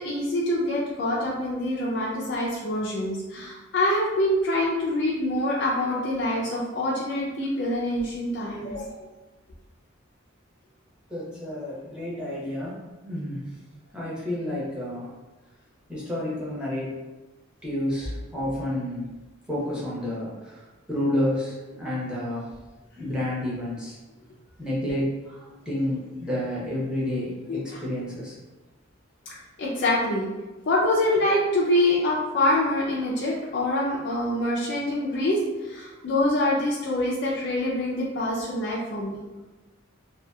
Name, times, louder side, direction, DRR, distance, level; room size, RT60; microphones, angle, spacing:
voice 1, 0.0-9.1 27.5-27.8 29.3-30.3 30.7-39.2, left 1 dB, 60° left, -5 dB, 0.4 m, -25 dB
voice 2, 11.1-13.4 13.9-15.1 15.9-17.0 17.6-19.1 19.5-22.5 23.0-24.0 24.6-28.4, left 1 dB, 5° right, -8 dB, 0.7 m, -30 dB
2.7 x 2.3 x 2.2 m, 1.1 s
head